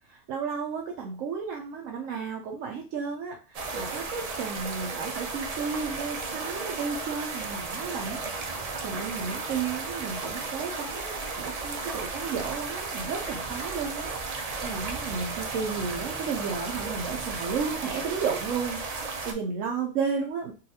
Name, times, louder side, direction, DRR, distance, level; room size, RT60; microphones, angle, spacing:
voice 1, 0.1-8.2 8.8-18.8 19.2-20.5, right 5 dB, 90° right, 0 dB, 1.0 m, -33 dB
sound 1, 3.5-19.3, right 3 dB, 65° right, 0.3 m, -34 dB
3.8 x 2.4 x 2.7 m, 0.34 s
omnidirectional pair, 1.3 m